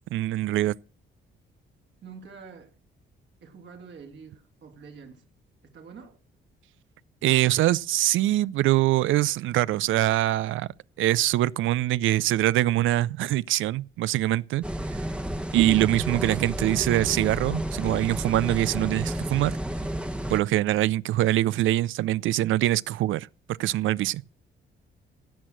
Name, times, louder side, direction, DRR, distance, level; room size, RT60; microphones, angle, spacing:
voice 1, 0.1-0.7 7.2-10.7 11.0-14.6 15.5-19.6 20.3-23.3 23.6-24.2, right 15 dB, 80° right, 0.5 m, -23 dB
voice 2, 2.0-2.7 3.4-5.2 5.6-6.2 15.9-16.3, right 5 dB, 65° right, 3.0 m, -46 dB
sound 1, 14.6-20.4, right 1 dB, 5° right, 0.9 m, -31 dB
16.5 x 6.3 x 5.9 m
cardioid pair, 90°, 20 cm